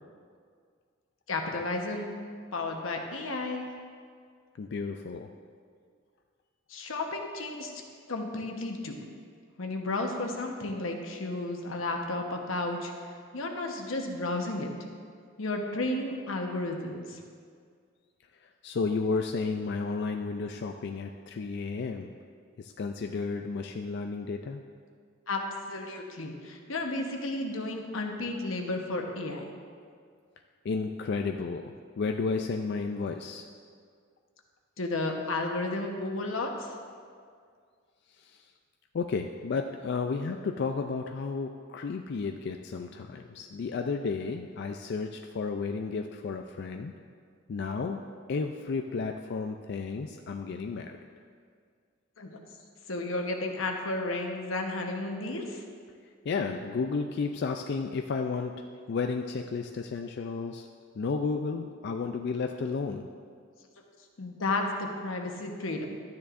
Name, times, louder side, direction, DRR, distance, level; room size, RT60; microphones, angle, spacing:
voice 1, 1.3-2.1 2.5-3.6 6.7-7.7 8.1-9.0 9.6-12.9 13.3-14.7 15.4-17.2 25.3-25.4 25.7-29.5 34.8-36.7 52.2-52.4 52.9-55.6 64.2-65.9, left 2 dB, 90° left, 2 dB, 1.0 m, -32 dB
voice 2, 4.6-5.3 18.6-22.1 22.6-24.6 30.6-33.5 38.9-46.9 47.5-48.0 48.3-51.0 56.3-58.6 58.9-60.7 61.0-63.1, left 4 dB, 55° left, 4 dB, 0.4 m, -32 dB
12.5 x 9.5 x 2.5 m, 2.1 s
head